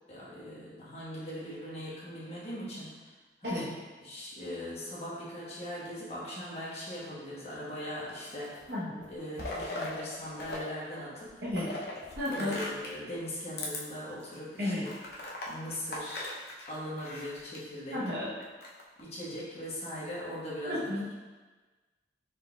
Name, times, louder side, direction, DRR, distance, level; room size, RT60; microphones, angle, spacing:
voice 1, 0.1-3.0 3.4-3.7 4.0-8.6 9.1-11.3 12.3-14.9 15.5-16.3 16.7-18.0 19.0-21.1, equal, 35° left, -8 dB, 1.3 m, -40 dB
sound 1, 8.0-8.7 9.0-10.6 10.9-13.0 13.5-13.8 14.3-14.4 14.8-17.6 18.4-19.0, left 2 dB, 60° left, 0.7 m, -40 dB
voice 2, 8.7-9.0 11.4-11.8 12.2-12.6 14.6-14.9 17.9-18.3 20.7-21.1, left 1 dB, 65° right, -7 dB, 0.9 m, -32 dB
4.6 x 4.0 x 2.3 m, 1.3 s
head